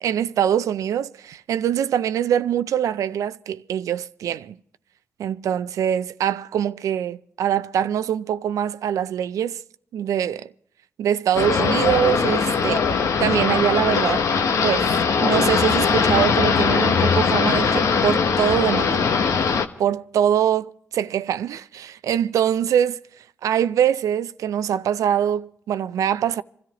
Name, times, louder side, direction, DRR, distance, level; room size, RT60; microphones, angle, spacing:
voice 1, 0.0-4.6 5.2-9.6 9.9-10.5 11.0-14.2 14.6-14.9 15.2-19.1 19.8-20.6 20.9-23.0 23.4-26.4, right 9 dB, 85° right, 0.5 m, -23 dB
sound 1, 11.3-19.7, left 5 dB, 80° left, 1.0 m, -20 dB
26.5 x 13.5 x 3.0 m
cardioid pair, 55°, 5 cm